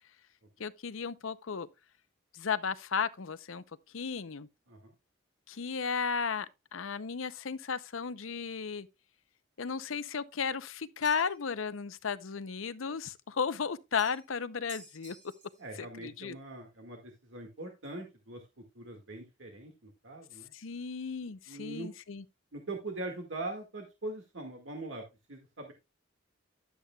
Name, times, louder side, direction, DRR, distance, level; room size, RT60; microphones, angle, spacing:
voice 1, 0.6-1.7 2.3-3.6 3.9-4.5 5.5-6.5 6.7-8.9 9.6-15.2 16.0-16.3 20.5-22.2, left 6 dB, 85° left, 0.7 m, -34 dB
sound 1, 11.0-11.5 14.0-14.3 14.7-15.7, right 3 dB, 40° right, 2.7 m, -51 dB
voice 2, 15.6-18.4 18.8-20.5 21.5-21.9 22.5-25.0 25.3-25.7, right 2 dB, 70° right, 1.9 m, -42 dB
12.0 x 8.1 x 2.3 m
head